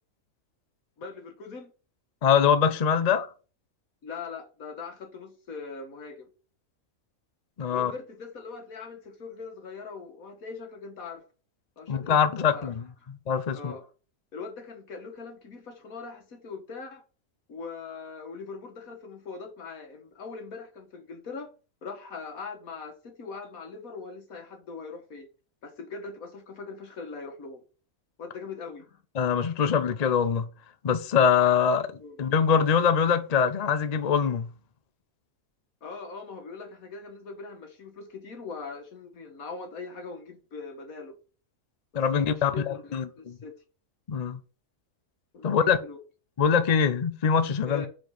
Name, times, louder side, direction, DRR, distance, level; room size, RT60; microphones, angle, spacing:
voice 1, 1.0-1.7 4.0-6.3 7.7-11.2 11.8-12.7 13.0-13.1 13.5-13.9 14.3-17.0 17.5-21.5 21.8-25.3 25.6-27.6 28.2-29.0 32.0-32.2 35.8-41.2 41.9-43.5 45.3-46.0 47.7-47.9, left 4 dB, 75° left, 1.8 m, -41 dB
voice 2, 2.2-3.3 7.6-7.9 11.9-12.8 13.3-13.7 29.2-30.5 30.8-31.9 32.2-34.5 41.9-43.4 44.1-44.4 45.4-45.8 46.4-47.8, left 7 dB, 45° left, 0.5 m, -23 dB
5.2 x 4.3 x 5.9 m
omnidirectional pair, 1.5 m